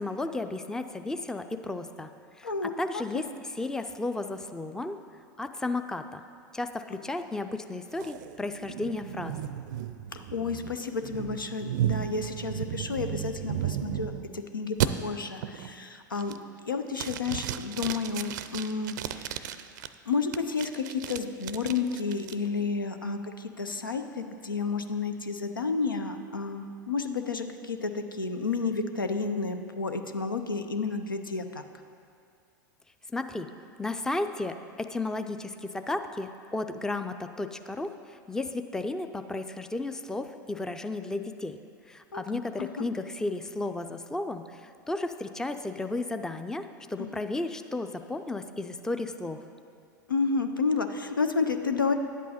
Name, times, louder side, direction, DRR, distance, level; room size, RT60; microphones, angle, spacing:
voice 1, 0.0-2.1 2.4-5.0 5.4-6.2 6.5-9.3 33.1-33.5 33.8-41.6 41.9-49.4, left 2 dB, 5° left, 8 dB, 0.4 m, -33 dB
voice 2, 2.4-3.2 10.1-14.1 14.5-16.3 16.7-19.5 20.1-31.6 42.1-42.2 42.6-42.7 47.0-47.1 50.1-51.9, left 4 dB, 90° left, 7 dB, 0.6 m, -31 dB
sound 1, 8.0-14.3 14.8-14.9 15.4-15.8 16.2-16.6 16.9-19.9 20.3-22.3, right 11 dB, 65° right, 0.4 m, -34 dB
10.5 x 8.2 x 4.2 m, 2.3 s
figure-of-eight pair, 85°, 11 cm